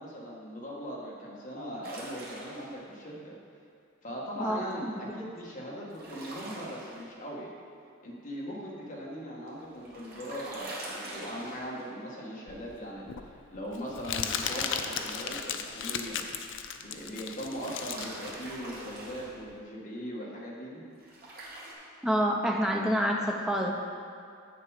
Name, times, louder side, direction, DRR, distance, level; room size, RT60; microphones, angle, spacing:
voice 1, 0.0-3.3 4.0-7.5 8.0-16.2 16.8-20.8, equal, 40° left, -4 dB, 1.6 m, -40 dB
sound 1, 1.8-2.8 5.9-7.0 9.5-11.9 14.1-15.5 17.4-19.3 21.0-21.7, right 1 dB, 45° right, 1.7 m, -44 dB
Crumpling crinkling, 12.5-19.6, left 7 dB, 60° left, 0.5 m, -36 dB
voice 2, 22.0-23.7, equal, 5° right, 0 dB, 0.7 m, -27 dB
7.7 x 6.8 x 4.9 m, 2.4 s
head